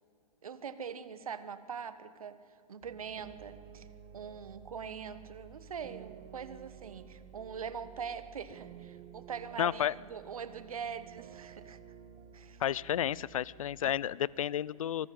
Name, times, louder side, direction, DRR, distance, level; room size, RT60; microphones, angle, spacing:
voice 1, 0.4-2.3 2.7-3.9 4.1-11.8 12.3-12.6, right 6 dB, 65° right, 13 dB, 1.5 m, -42 dB
sound 1, 2.8-13.9, right 9 dB, 35° right, 2.1 m, -52 dB
voice 2, 9.6-9.9 12.6-15.1, left 10 dB, 60° left, 24 dB, 0.5 m, -31 dB
24.0 x 14.0 x 8.9 m, 2.5 s
figure-of-eight pair, 110°, 19 cm